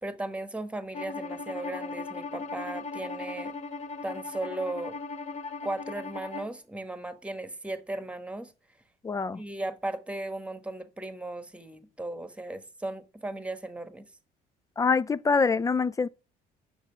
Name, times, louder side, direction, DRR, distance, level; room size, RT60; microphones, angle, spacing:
voice 1, 0.0-3.5 4.0-5.0 5.6-8.5 9.3-14.1, right 2 dB, 5° right, 1.2 m, -36 dB
Bowed string instrument, 0.9-6.6, left 4 dB, 40° left, 1.2 m, -38 dB
voice 2, 9.0-9.4 14.8-16.1, left 4 dB, 20° left, 0.4 m, -25 dB
8.9 x 6.1 x 5.5 m
cardioid pair, 110°, 17 cm